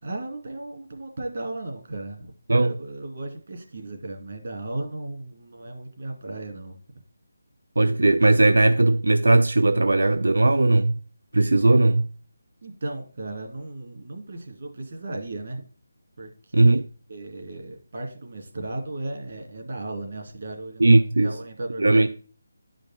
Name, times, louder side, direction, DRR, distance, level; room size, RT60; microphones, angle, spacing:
voice 1, 0.0-6.8 12.6-15.6 16.2-16.8 17.1-22.1, right 2 dB, 55° right, 2.4 m, -35 dB
voice 2, 7.8-11.0 11.3-12.1 16.5-16.8 20.8-21.3 21.8-22.1, right 2 dB, 90° right, 0.5 m, -18 dB
10.5 x 5.2 x 4.3 m
figure-of-eight pair, 170°, 0 cm